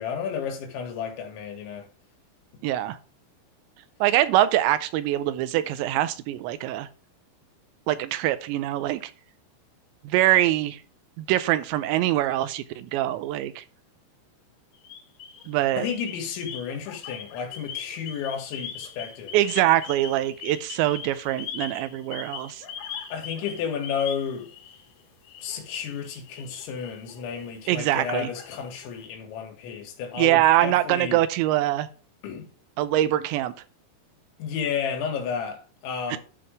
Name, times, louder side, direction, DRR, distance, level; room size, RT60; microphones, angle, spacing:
voice 1, 0.0-1.9 15.7-19.4 23.1-24.5 25.4-31.2 32.2-32.5 34.4-36.2, left 7 dB, 80° left, 4.1 m, -32 dB
voice 2, 2.6-3.0 4.0-6.9 7.9-9.1 10.0-10.8 11.2-13.6 15.5-15.9 19.3-22.6 27.7-28.3 30.1-31.9 32.8-33.5 36.1-36.2, right 14 dB, 85° right, 2.8 m, -23 dB
sound 1, 14.7-15.5 15.9-24.9 25.2-29.0, left 8 dB, 65° left, 2.8 m, -41 dB
12.5 x 5.2 x 3.4 m
omnidirectional pair, 5.3 m